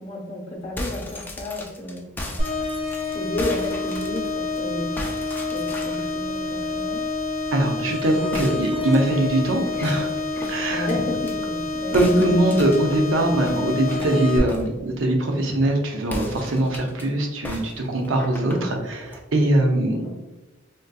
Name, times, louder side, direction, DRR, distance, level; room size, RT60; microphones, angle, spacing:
voice 1, 0.0-2.0 3.1-4.2 4.6-4.9 5.5-7.0 10.7-12.0 20.0-20.1, left 1 dB, 30° left, -2 dB, 0.8 m, -31 dB
sound 1, 0.6-4.6 5.0-6.1 8.3-11.3 11.9-14.8 16.0-17.0 17.4-19.2, left 1 dB, 10° left, 0.3 m, -36 dB
sound 2, 2.4-14.4, left 3 dB, 55° right, 1.3 m, -28 dB
voice 2, 7.5-10.1 10.5-10.9 11.9-20.0, right 1 dB, 70° right, 3 dB, 0.6 m, -22 dB
3.8 x 2.6 x 2.2 m, 1.1 s
head